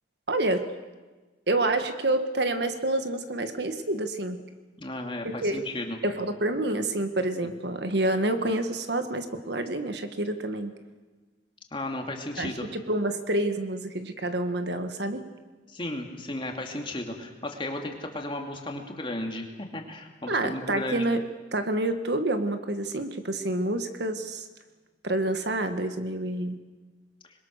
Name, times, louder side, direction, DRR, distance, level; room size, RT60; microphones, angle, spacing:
voice 1, 0.3-0.7 1.5-4.4 5.2-5.6 6.0-10.7 12.4-15.2 20.3-21.2 21.5-24.5 25.0-26.6, right 1 dB, 60° right, 8 dB, 1.6 m, -28 dB
voice 2, 4.8-6.0 11.7-12.6 15.7-21.0, left 1 dB, 25° left, 2 dB, 2.5 m, -34 dB
26.0 x 22.0 x 6.6 m, 1.3 s
head